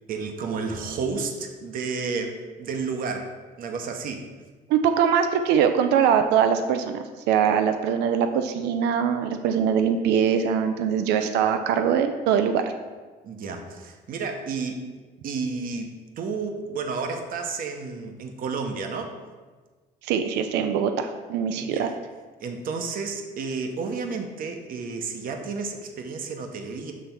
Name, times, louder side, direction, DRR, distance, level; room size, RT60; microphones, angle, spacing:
voice 1, 0.1-3.3 3.6-4.2 13.2-14.8 15.2-19.2 21.6-21.9 22.4-26.9, right 4 dB, 55° right, 5 dB, 0.9 m, -31 dB
voice 2, 4.7-12.7 20.0-21.9, right 7 dB, 90° right, 8 dB, 0.5 m, -22 dB
7.3 x 3.3 x 5.8 m, 1.4 s
cardioid pair, 110°, 17 cm